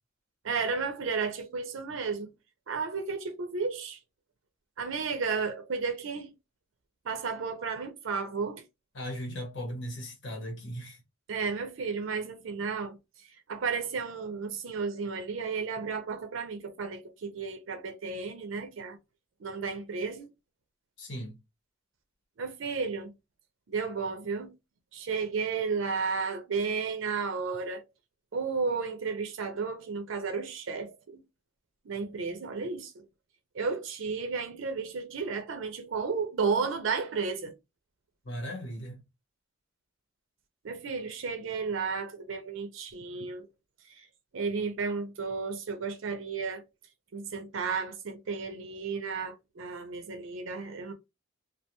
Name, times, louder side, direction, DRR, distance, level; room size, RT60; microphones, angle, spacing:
voice 1, 0.4-2.3 2.7-4.0 4.8-6.3 7.0-8.6 11.3-13.0 13.5-19.0 19.4-20.3 22.4-23.1 23.7-24.5 24.9-27.8 28.3-31.2 31.9-33.0 33.5-37.5 40.6-43.5 43.9-44.1 44.3-46.6 47.1-50.9, right 5 dB, 75° right, 0.5 m, -33 dB
voice 2, 8.9-11.0 21.0-21.4 38.2-39.0, equal, 65° left, 1.0 m, -37 dB
2.3 x 2.2 x 2.8 m
head